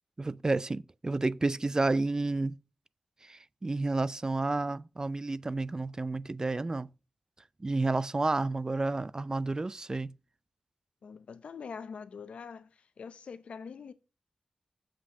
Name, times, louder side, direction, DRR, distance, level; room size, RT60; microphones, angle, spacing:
voice 1, 0.2-2.6 3.2-6.9 7.6-10.1, right 2 dB, 35° right, 0.4 m, -30 dB
voice 2, 11.0-13.9, left 6 dB, 90° left, 0.7 m, -44 dB
7.5 x 6.1 x 5.5 m
cardioid pair, 60°, 2 cm